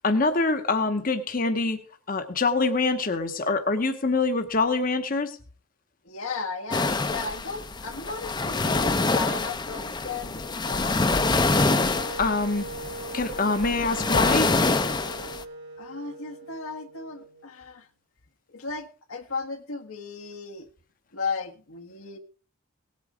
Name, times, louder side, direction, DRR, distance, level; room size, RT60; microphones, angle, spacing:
voice 1, 0.0-1.8 2.1-5.4 12.2-12.7 13.1-14.5, left 3 dB, 40° left, 0.8 m, -25 dB
voice 2, 6.0-11.1 15.8-17.9 18.5-20.7 21.1-22.2, left 4 dB, 80° left, 1.4 m, -35 dB
sound 1, 6.7-15.4, left 3 dB, 20° left, 0.6 m, -26 dB
Wind instrument woodwind instrument, 11.9-17.8, right 3 dB, 50° right, 1.4 m, -40 dB
18.0 x 8.4 x 4.9 m
head